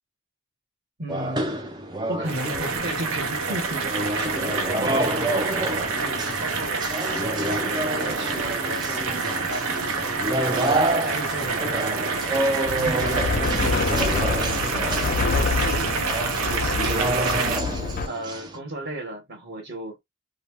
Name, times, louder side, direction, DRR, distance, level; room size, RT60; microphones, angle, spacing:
voice 1, 1.0-1.5 2.1-5.6 6.0-6.9 7.1-10.3 10.7-12.5 12.8-14.6 15.3-17.7 18.0-20.0, right 1 dB, 45° right, 1.1 m, -35 dB
sound 1, 1.1-18.6, right 1 dB, 20° right, 0.5 m, -29 dB
sound 2, 2.2-17.6, right 4 dB, 80° right, 0.7 m, -27 dB
sound 3, 12.7-18.1, left 4 dB, 40° left, 0.3 m, -27 dB
2.7 x 2.2 x 3.0 m
head